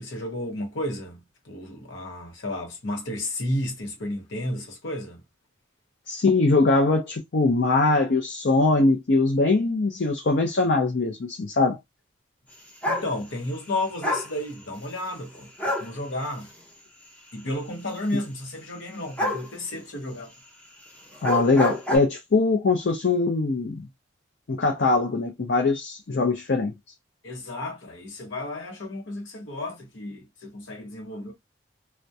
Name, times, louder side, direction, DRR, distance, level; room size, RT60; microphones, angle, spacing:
voice 1, 0.0-5.2 12.9-16.5 17.3-20.3 27.2-31.3, left 1 dB, 80° left, 0.8 m, -32 dB
voice 2, 6.1-11.8 21.2-23.8 24.5-26.7, left 3 dB, 60° left, 0.5 m, -22 dB
sound 1, 12.8-13.1 14.0-14.3 15.6-15.9 19.2-19.5 21.1-22.0, left 1 dB, 10° left, 0.6 m, -26 dB
2.2 x 2.1 x 2.6 m
head